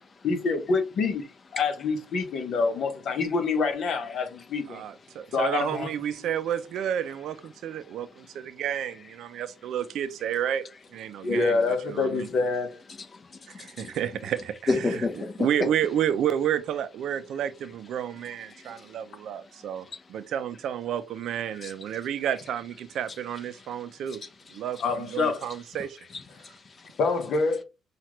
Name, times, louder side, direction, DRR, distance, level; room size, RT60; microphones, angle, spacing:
voice 1, 0.2-1.2 1.5-4.8 5.3-5.9 6.3-6.4 11.2-12.8 24.8-25.5 27.0-27.6, left 4 dB, 60° left, 1.0 m, -26 dB
voice 2, 4.7-10.7 10.9-11.6 11.9-12.3 13.5-14.6 15.4-24.2 24.5-26.0, right 9 dB, 65° right, 0.5 m, -30 dB
voice 3, 7.8-8.3 11.2-11.3 13.0-14.0 14.7-15.5 18.5-20.1 21.5-21.9 23.5-24.8 26.1-27.0, left 3 dB, 35° left, 0.9 m, -35 dB
5.7 x 2.5 x 3.1 m
cardioid pair, 125°, 0 cm